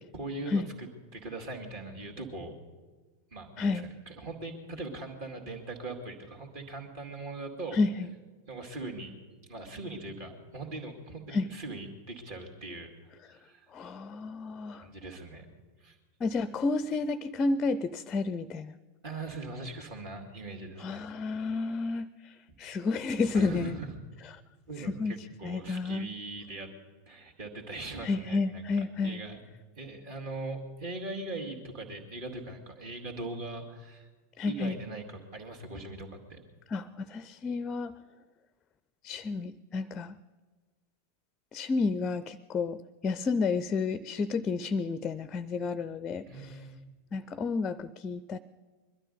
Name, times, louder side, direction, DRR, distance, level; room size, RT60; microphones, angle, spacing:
voice 1, 0.1-0.6 1.1-2.5 3.3-7.8 8.5-9.1 9.5-12.9 13.3-13.7 14.8-15.5 15.8-16.0 19.0-21.1 22.5-22.6 23.3-23.9 24.7-26.7 27.1-28.7 29.0-29.4 29.8-34.1 34.5-36.4 46.3-46.8, right 2 dB, 50° right, 2 dB, 2.4 m, -40 dB
voice 2, 7.7-8.1 11.3-11.5 13.7-14.9 16.2-18.8 20.8-23.8 24.8-25.2 25.4-26.1 28.0-29.2 34.4-34.8 36.7-37.9 39.0-40.2 41.5-42.8 43.0-46.6 47.1-48.4, left 4 dB, 25° left, 16 dB, 0.4 m, -31 dB
21.5 x 12.5 x 5.4 m, 1.4 s
figure-of-eight pair, 90°, 0 cm